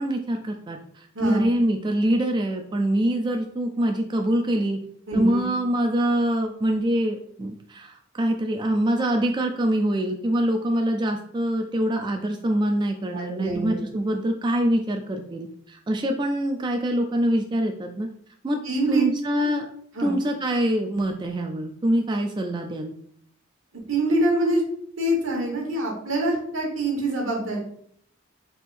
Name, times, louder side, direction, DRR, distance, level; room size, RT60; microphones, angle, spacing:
voice 1, 0.0-4.8 5.1-18.1 18.4-18.6 18.9-19.7 20.0-23.0, right 1 dB, 20° right, 4 dB, 0.3 m, -24 dB
voice 2, 1.1-1.5 5.1-5.4 13.1-13.8 18.6-19.1 19.3-19.5 19.9-20.2 23.9-24.6 25.0-27.6, right 1 dB, 80° right, 0 dB, 1.3 m, -25 dB
4.3 x 3.5 x 2.5 m, 0.64 s
head